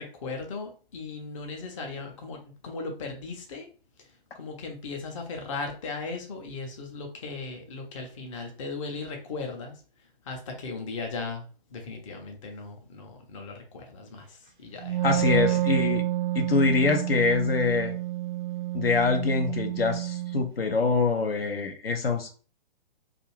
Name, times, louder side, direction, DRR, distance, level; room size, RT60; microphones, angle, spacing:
voice 1, 0.0-3.7 4.3-9.8 10.2-15.6, left 3 dB, 35° left, 2 dB, 0.6 m, -37 dB
Wind instrument woodwind instrument, 14.8-20.5, right 15 dB, 55° right, 0.4 m, -29 dB
voice 2, 15.0-16.0 16.3-17.9 18.7-22.3, left 4 dB, 75° left, 6 dB, 0.7 m, -24 dB
2.5 x 2.4 x 3.0 m, 0.37 s
figure-of-eight pair, 130°, 30 cm